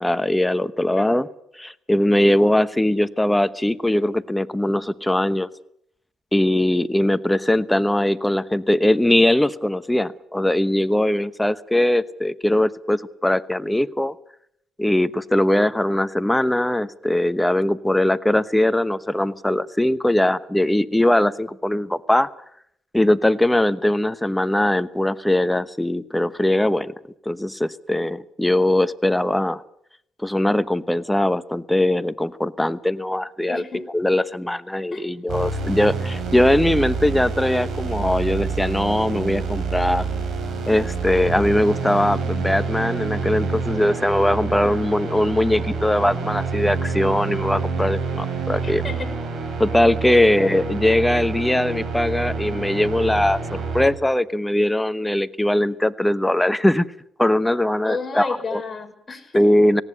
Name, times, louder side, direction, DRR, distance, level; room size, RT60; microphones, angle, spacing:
voice 1, 0.0-1.3 1.5-5.5 6.3-14.1 14.8-22.3 22.9-26.9 27.2-29.6 30.2-40.1 40.7-48.8 49.6-56.9 57.2-58.6 59.3-59.8, left 1 dB, 5° left, 14 dB, 0.9 m, -20 dB
voice 2, 33.5-33.9 34.9-35.1 44.6-45.0 48.5-49.1 50.0-50.3 57.8-59.5, left 4 dB, 25° left, 3 dB, 5.6 m, -32 dB
sound 1, 35.3-53.9, right 4 dB, 60° right, 6.8 m, -27 dB
18.5 x 17.5 x 9.7 m, 0.71 s
cardioid pair, 90°, 0 cm